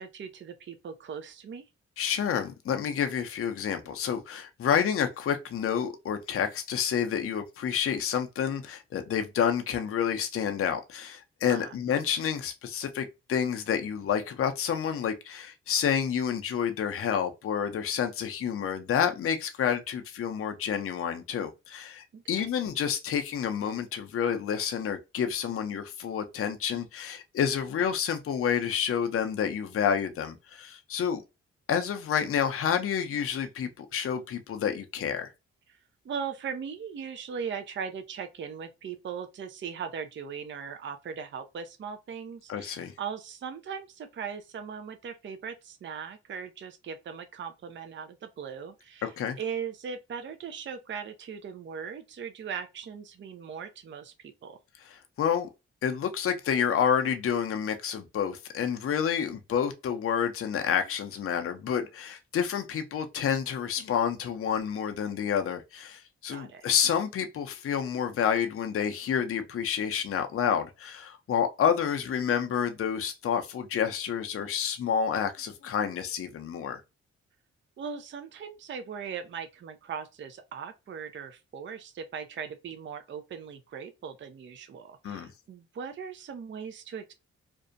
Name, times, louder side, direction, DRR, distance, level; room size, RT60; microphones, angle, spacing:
voice 1, 0.0-1.7 11.5-11.7 22.1-22.5 35.7-35.8 36.0-49.1 49.4-54.6 66.3-66.7 77.8-87.1, right 7 dB, 40° right, 0.5 m, -39 dB
voice 2, 2.0-31.2 31.7-35.3 42.5-42.9 49.0-49.4 54.9-55.5 55.8-76.8 85.0-85.3, left 8 dB, 50° left, 0.5 m, -29 dB
2.5 x 2.1 x 2.5 m
supercardioid pair, 45°, 29 cm